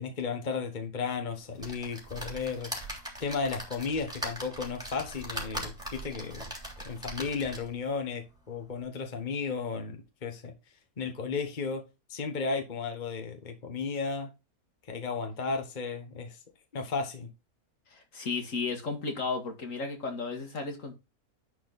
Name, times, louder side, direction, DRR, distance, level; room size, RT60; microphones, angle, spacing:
voice 1, 0.0-2.8 3.2-6.5 6.8-10.5 11.0-11.8 12.1-14.3 14.9-16.4 16.7-17.3, left 5 dB, 35° left, 1.3 m, -34 dB
sound 1, 1.6-7.8 8.4-8.5 8.7-8.8, equal, 5° right, 3.2 m, -40 dB
voice 2, 17.9-20.9, left 4 dB, 60° left, 2.2 m, -34 dB
10.5 x 4.6 x 4.1 m
omnidirectional pair, 1.6 m